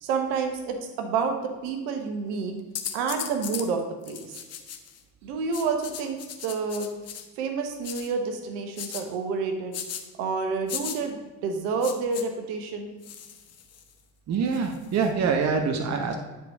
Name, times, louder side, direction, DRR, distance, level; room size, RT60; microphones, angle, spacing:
voice 1, 0.0-2.5 2.9-4.3 5.2-6.9 7.4-9.7 10.2-12.9, right 5 dB, 60° right, 5 dB, 1.2 m, -29 dB
sound 1, 2.7-3.7 4.0-5.0 5.5-7.2 7.8-8.1 8.8-9.0 9.7-10.0 10.7-11.0 11.8-12.2 13.0-13.9 14.5-15.1, left 9 dB, 35° left, 0.8 m, -37 dB
voice 2, 14.3-16.1, right 5 dB, 40° right, 4 dB, 0.9 m, -25 dB
9.7 x 5.0 x 4.1 m, 1.3 s
figure-of-eight pair, 55°, 43 cm